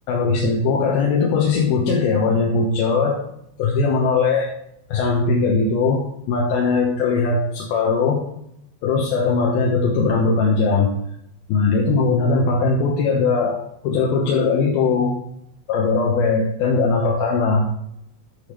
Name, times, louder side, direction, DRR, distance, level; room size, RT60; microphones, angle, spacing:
voice 1, 0.1-3.2 3.6-4.5 4.9-8.2 8.8-10.9 11.5-15.1 15.7-17.7, left 4 dB, 75° left, -1 dB, 2.4 m, -19 dB
10.5 x 7.0 x 3.2 m, 0.75 s
omnidirectional pair, 5.2 m